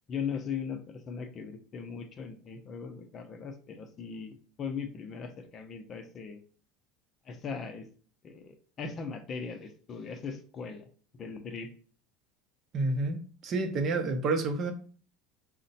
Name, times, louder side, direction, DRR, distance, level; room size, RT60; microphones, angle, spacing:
voice 1, 0.1-6.4 7.3-7.9 8.2-10.9 11.2-11.7, left 6 dB, 30° left, 0.6 m, -39 dB
voice 2, 12.7-14.7, right 3 dB, 35° right, 0.7 m, -29 dB
4.9 x 2.1 x 4.1 m
supercardioid pair, 145°, 0 cm